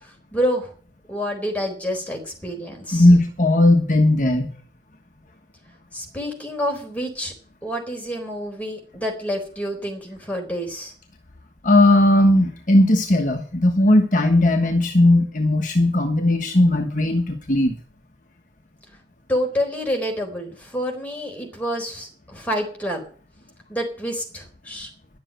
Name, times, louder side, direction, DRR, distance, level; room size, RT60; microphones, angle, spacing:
voice 1, 0.0-0.7 1.1-3.1 5.9-7.3 7.6-10.9 19.3-23.0 23.7-24.9, equal, 10° left, 1 dB, 4.1 m, -28 dB
voice 2, 2.9-4.5 11.6-17.8, left 1 dB, 45° left, 4 dB, 1.3 m, -17 dB
11.5 x 7.5 x 9.1 m, 0.44 s
head